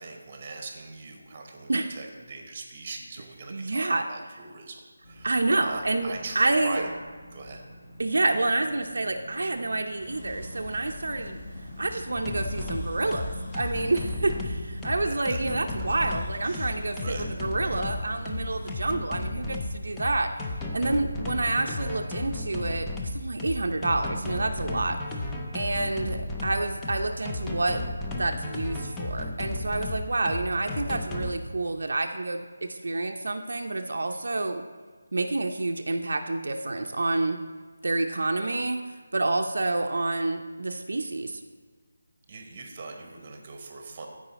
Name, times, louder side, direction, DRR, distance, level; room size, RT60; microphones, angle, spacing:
voice 1, 0.0-6.9 7.3-7.6 16.4-17.3 42.3-44.1, right 3 dB, 20° right, 3 dB, 0.9 m, -41 dB
voice 2, 3.5-4.1 5.2-6.9 8.0-11.4 11.8-20.3 20.7-25.0 25.5-27.8 28.2-34.6 35.1-37.4 37.8-41.4, right 2 dB, 60° right, 4 dB, 0.5 m, -28 dB
sound 1, 5.0-15.9, equal, 40° left, 1.4 m, -49 dB
sound 2, 9.9-18.7, left 1 dB, 20° left, 0.9 m, -42 dB
sound 3, 12.1-31.3, left 2 dB, 5° left, 0.4 m, -33 dB
14.5 x 4.9 x 4.0 m, 1.5 s
figure-of-eight pair, 180°, 0 cm